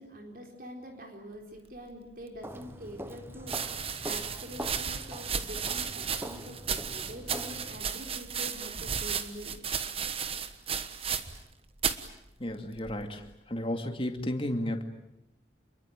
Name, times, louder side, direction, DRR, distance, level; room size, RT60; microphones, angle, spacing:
voice 1, 0.0-9.5, equal, 50° right, 2 dB, 4.3 m, -45 dB
sound 1, 2.3-2.4 3.4-11.5 11.8-12.1 12.8-13.3, right 7 dB, 30° right, 1.2 m, -34 dB
Walk footsteps, 2.4-8.0, right 1 dB, 10° right, 1.0 m, -43 dB
voice 2, 12.4-13.2 13.5-14.8, left 1 dB, 30° left, 5 dB, 2.5 m, -32 dB
28.5 x 22.5 x 9.0 m, 0.84 s
head